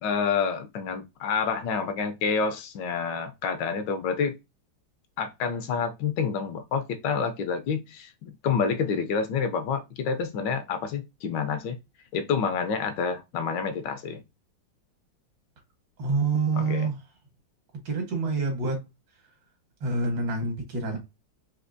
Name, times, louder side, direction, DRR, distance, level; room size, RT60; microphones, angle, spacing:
voice 1, 0.0-4.3 5.2-11.8 12.1-14.2 16.5-16.9, left 6 dB, 80° left, 1.3 m, -28 dB
voice 2, 16.0-17.0 17.9-18.8 19.8-21.0, right 3 dB, 75° right, 1.9 m, -27 dB
4.3 x 2.7 x 2.6 m
omnidirectional pair, 2.0 m